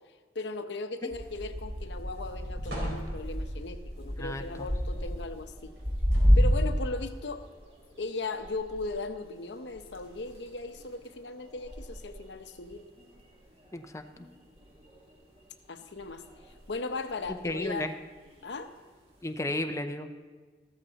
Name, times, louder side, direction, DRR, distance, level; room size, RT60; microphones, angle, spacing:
voice 1, 0.3-5.7 6.4-7.5 8.0-12.8 15.7-16.2 16.7-17.9 18.4-18.7, left 3 dB, 75° left, 8 dB, 0.8 m, -37 dB
sound 1, 1.1-6.9 7.2-14.3 14.6-15.3 16.0-17.9 18.3-18.7 19.4-19.5, equal, 35° right, 2.4 m, -31 dB
sound 2, 1.1-1.6 2.0-2.2 2.6-3.7 5.8-6.6 7.4-7.5, equal, 85° right, 4.3 m, -41 dB
voice 2, 4.2-4.7 13.7-14.0 17.4-17.9 19.2-20.1, left 1 dB, 15° left, 6 dB, 0.6 m, -33 dB
14.5 x 13.5 x 4.0 m, 1.4 s
head